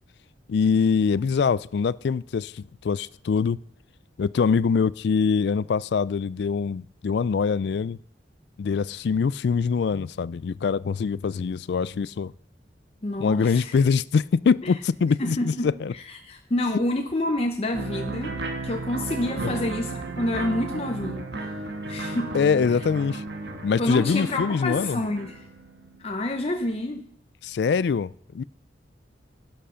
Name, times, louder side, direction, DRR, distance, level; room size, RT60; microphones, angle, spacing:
voice 1, 0.5-3.6 4.2-8.0 8.6-12.3 13.2-15.9 22.3-23.2 23.6-25.0 27.4-28.4, left 5 dB, 65° left, 0.3 m, -24 dB
voice 2, 13.0-13.8 14.6-14.7 15.2-18.4 18.6-21.5 21.9-22.4 23.8-25.4 26.0-27.0, left 1 dB, 30° left, 0.7 m, -28 dB
sound 1, 17.7-26.1, right 3 dB, 65° right, 1.4 m, -34 dB
11.5 x 7.7 x 5.7 m
head